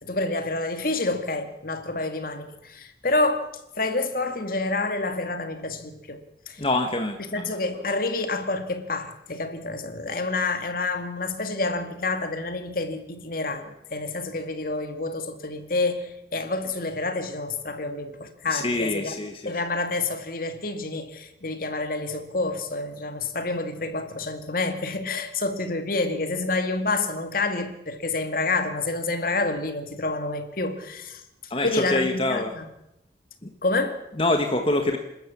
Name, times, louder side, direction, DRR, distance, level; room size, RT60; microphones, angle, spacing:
voice 1, 0.0-3.5 3.7-6.2 6.5-6.6 7.3-19.1 19.5-31.2 31.6-32.7 33.6-34.0, left 3 dB, 55° left, 2.2 m, -28 dB
voice 2, 6.6-7.5 18.5-19.5 31.5-32.5 33.4-33.5 34.2-35.0, left 2 dB, 30° left, 1.4 m, -25 dB
27.0 x 13.0 x 8.5 m
head